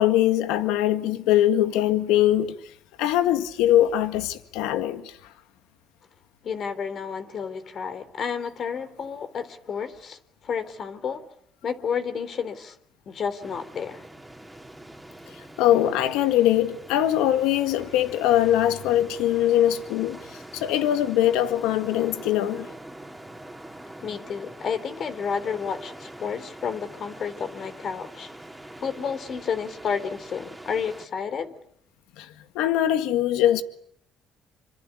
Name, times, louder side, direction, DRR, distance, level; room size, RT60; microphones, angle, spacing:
voice 1, 0.0-2.6 3.0-5.2 15.6-22.7 32.2-33.6, left 12 dB, 90° left, 1.9 m, -22 dB
voice 2, 6.4-11.2 11.6-12.8 13.1-14.0 24.0-28.3 28.8-31.5, left 6 dB, 50° left, 3.6 m, -31 dB
sound 1, 13.4-31.1, right 1 dB, 5° right, 3.4 m, -44 dB
27.5 x 25.5 x 8.4 m
cardioid pair, 95°, 0 cm